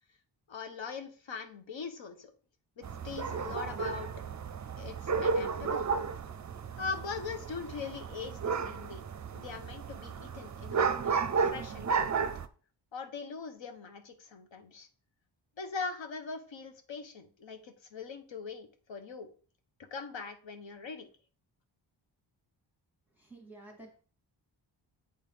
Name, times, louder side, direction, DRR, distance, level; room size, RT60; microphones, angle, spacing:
voice 1, 0.5-2.3 2.8-4.1 4.8-6.0 6.8-9.0 9.3-12.3 12.9-14.9 15.6-19.3 19.9-21.1, left 5 dB, 70° left, 7 dB, 1.2 m, -41 dB
sound 1, 2.8-12.5, right 5 dB, 40° right, 0.5 m, -33 dB
voice 2, 23.1-24.0, right 2 dB, 5° right, 0 dB, 1.1 m, -51 dB
8.1 x 4.3 x 3.6 m, 0.41 s
wide cardioid pair, 120°, 47 cm